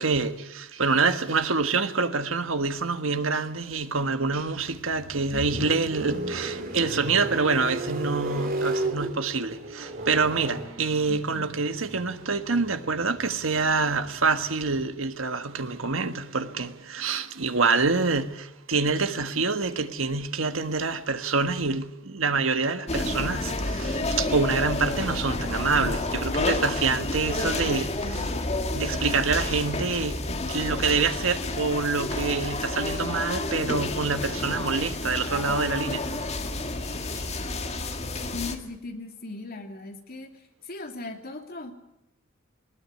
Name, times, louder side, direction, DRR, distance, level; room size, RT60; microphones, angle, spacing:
voice 1, 0.0-28.2 28.7-30.2 30.5-36.0 37.1-37.3, right 4 dB, 80° right, 1.5 m, -26 dB
sound 1, 4.6-14.8, right 2 dB, 45° right, 3.8 m, -35 dB
voice 2, 5.3-6.0 11.1-11.5 28.0-28.4 34.9-35.2 35.5-35.6 37.4-37.5 38.3-40.3 40.6-41.7, left 3 dB, 50° left, 2.9 m, -39 dB
sound 2, 22.9-38.6, left 2 dB, 35° left, 1.9 m, -30 dB
20.0 x 19.5 x 9.5 m
head